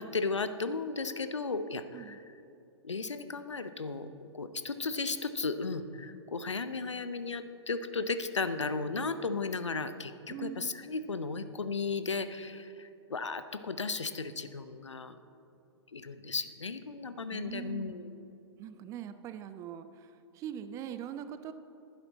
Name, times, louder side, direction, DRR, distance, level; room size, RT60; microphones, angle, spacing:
voice 1, 0.0-2.2 2.8-15.2 15.9-18.2, left 4 dB, 80° left, 11 dB, 0.7 m, -35 dB
voice 2, 10.3-10.7 17.3-18.0 18.6-21.5, right 9 dB, 20° right, 11 dB, 0.5 m, -42 dB
12.0 x 10.5 x 4.0 m, 2.7 s
figure-of-eight pair, 110°, 15 cm